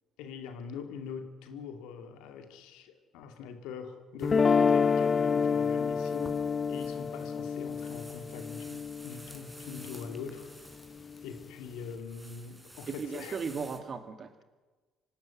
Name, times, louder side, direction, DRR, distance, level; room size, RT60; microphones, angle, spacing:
voice 1, 0.2-6.4 6.7-8.8 9.0-10.5 11.2-13.4, left 6 dB, 70° left, 2.4 m, -43 dB
sound 1, 4.2-10.3, left 5 dB, 35° left, 0.8 m, -28 dB
tall grass rustling, 5.9-13.8, right 1 dB, 10° right, 3.9 m, -52 dB
voice 2, 12.9-14.4, right 5 dB, 45° right, 2.2 m, -37 dB
25.0 x 12.0 x 9.6 m
hypercardioid pair, 50°, 0 cm